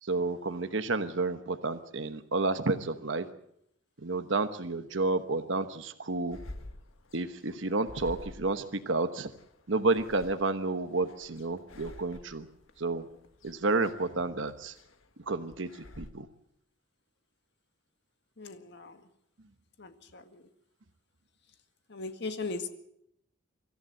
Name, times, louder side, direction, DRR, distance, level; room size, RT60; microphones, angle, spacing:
voice 1, 0.0-3.3 4.0-6.4 7.1-9.3 9.7-12.5 12.8-13.0 13.4-14.7 15.3-15.7 16.0-16.3, right 3 dB, 65° right, 10 dB, 1.1 m, -30 dB
sound 1, 6.3-16.1, left 1 dB, 85° left, 1.6 m, -49 dB
voice 2, 18.4-19.1 19.8-20.5 21.9-22.7, left 3 dB, 60° left, 8 dB, 1.9 m, -39 dB
25.0 x 14.5 x 7.7 m, 0.75 s
head